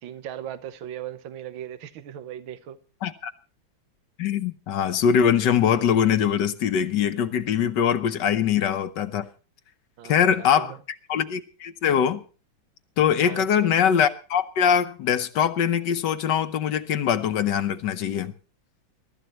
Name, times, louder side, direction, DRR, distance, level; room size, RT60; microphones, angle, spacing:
voice 1, 0.0-2.8 10.0-10.8 13.2-13.7, right 10 dB, 80° right, 1.7 m, -38 dB
voice 2, 3.0-3.3 4.2-9.2 10.0-10.7 11.1-12.2 13.0-18.3, left 8 dB, 65° left, 1.4 m, -22 dB
22.5 x 13.0 x 3.0 m
omnidirectional pair, 2.2 m